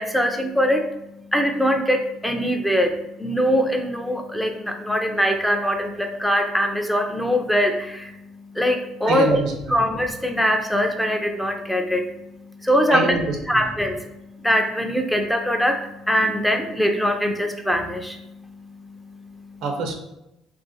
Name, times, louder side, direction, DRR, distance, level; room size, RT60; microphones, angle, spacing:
voice 1, 0.0-9.3 9.7-13.2 13.5-19.6, equal, 5° left, 4 dB, 0.5 m, -23 dB
voice 2, 9.0-9.5 12.9-13.6 19.6-19.9, right 3 dB, 75° right, 3 dB, 0.6 m, -25 dB
2.5 x 2.4 x 3.8 m, 0.89 s
supercardioid pair, 85°, 0 cm